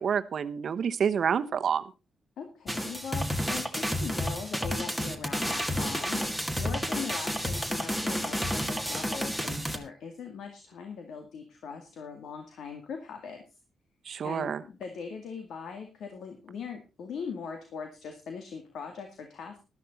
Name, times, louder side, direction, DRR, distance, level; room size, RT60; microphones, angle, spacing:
voice 1, 0.0-1.8 14.1-14.6, right 7 dB, 55° right, 11 dB, 0.9 m, -28 dB
voice 2, 2.4-13.4 14.2-19.6, left 6 dB, 75° left, 5 dB, 2.1 m, -40 dB
sound 1, 2.7-9.8, equal, 5° left, 1.6 m, -31 dB
12.5 x 12.0 x 4.0 m, 0.29 s
cardioid pair, 135°, 0 cm